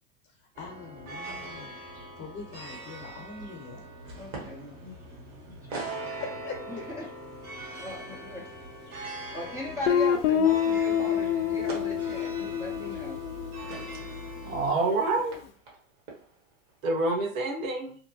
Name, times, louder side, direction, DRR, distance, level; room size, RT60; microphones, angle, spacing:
sound 1, 0.5-14.7, right 2 dB, 50° right, 1.4 m, -42 dB
voice 1, 0.6-1.8 2.2-3.9 6.2-6.8, left 5 dB, 35° left, 1 dB, 0.7 m, -42 dB
sound 2, 1.2-2.3 2.8-16.9, right 3 dB, 35° right, 1.0 m, -47 dB
voice 2, 4.2-5.0 5.4-5.8 6.7-7.1 7.8-8.5 9.3-13.2, left 1 dB, 10° right, -4 dB, 0.4 m, -39 dB
Guitar, 9.9-14.5, left 9 dB, 70° left, 0.5 m, -27 dB
voice 3, 14.4-15.4 16.8-18.0, right 3 dB, 75° right, 2 dB, 1.0 m, -27 dB
2.7 x 2.2 x 2.7 m, 0.43 s
hypercardioid pair, 110°, 41 cm